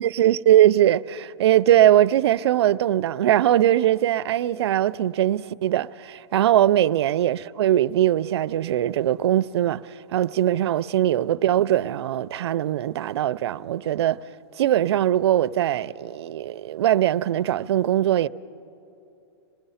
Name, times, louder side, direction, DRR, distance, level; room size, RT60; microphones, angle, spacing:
voice 1, 0.0-9.8 10.1-14.2 14.6-18.3, right 12 dB, 65° right, 0.4 m, -21 dB
25.5 x 20.0 x 5.6 m
hypercardioid pair, 170°, 15 cm